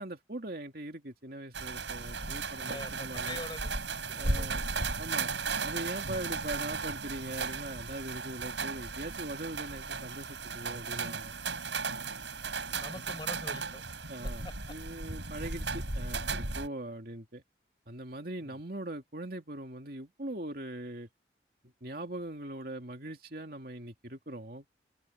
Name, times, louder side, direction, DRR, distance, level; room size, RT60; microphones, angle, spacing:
voice 1, 0.0-3.5 4.1-4.7 5.0-5.3 5.6-11.3 12.9-13.1 14.1-17.4 17.9-21.1 21.8-24.7, right 1 dB, 55° right, 2.6 m, -41 dB
sound 1, 1.5-16.7, right 4 dB, 85° right, 7.1 m, -35 dB
voice 2, 2.6-4.5 12.8-13.8 14.4-14.5 18.4-18.5, left 2 dB, 25° left, 7.7 m, -44 dB
open air
head